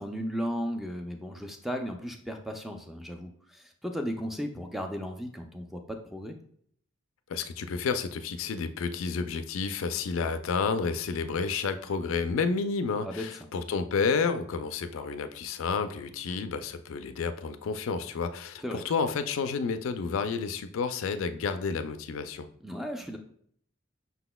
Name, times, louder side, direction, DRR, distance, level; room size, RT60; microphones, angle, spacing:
voice 1, 0.0-6.4 13.0-13.3 18.6-18.8 22.6-23.2, equal, ahead, 4 dB, 0.4 m, -35 dB
voice 2, 7.3-22.5, left 5 dB, 90° left, 10 dB, 0.4 m, -30 dB
5.7 x 4.0 x 2.2 m, 0.63 s
head